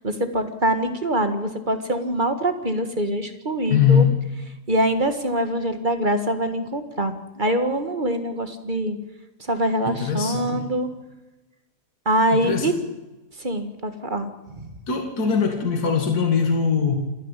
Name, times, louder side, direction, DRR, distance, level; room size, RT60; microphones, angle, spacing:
voice 1, 0.0-4.1 4.7-9.0 9.4-10.9 12.1-12.7 13.4-14.7, right 1 dB, 30° right, 8 dB, 1.8 m, -24 dB
voice 2, 3.7-4.1 9.9-10.7 12.3-12.8 14.9-16.9, left 7 dB, 65° left, 3 dB, 2.5 m, -21 dB
28.0 x 10.0 x 9.9 m, 1.1 s
omnidirectional pair, 1.8 m